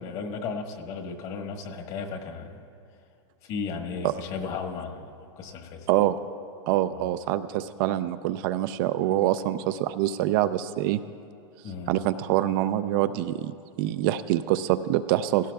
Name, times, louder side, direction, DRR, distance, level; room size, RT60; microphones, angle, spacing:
voice 1, 0.0-2.5 3.4-5.1 5.4-5.9 6.9-7.1 11.6-11.9, left 5 dB, 45° left, 3 dB, 1.3 m, -35 dB
voice 2, 5.9-6.2 6.7-11.0 11.9-15.5, right 13 dB, 50° right, 12 dB, 0.4 m, -25 dB
17.0 x 15.5 x 2.3 m, 2.4 s
supercardioid pair, 140°, 15 cm